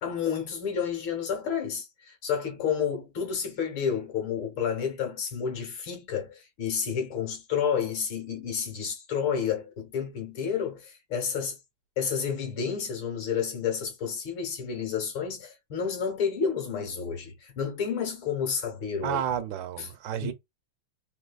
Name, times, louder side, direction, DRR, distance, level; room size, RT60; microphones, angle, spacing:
voice 1, 0.0-11.6 12.0-19.2 19.8-19.9 20.2-20.3, left 7 dB, 75° left, 2.0 m, -30 dB
voice 2, 19.0-20.3, right 10 dB, 75° right, 1.2 m, -31 dB
3.9 x 2.7 x 2.3 m
omnidirectional pair, 2.2 m